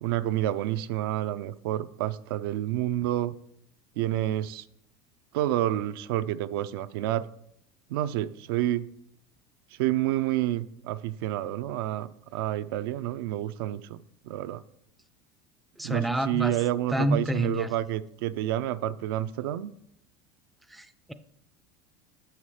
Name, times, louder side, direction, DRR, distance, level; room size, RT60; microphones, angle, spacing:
voice 1, 0.0-3.3 4.0-4.6 5.3-7.3 7.9-8.9 9.8-14.6 15.8-19.7, right 13 dB, 85° right, 0.4 m, -29 dB
voice 2, 15.8-16.6 16.9-17.7 20.7-21.1, equal, ahead, 0.3 m, -28 dB
6.7 x 5.7 x 4.8 m
supercardioid pair, 140°, 12 cm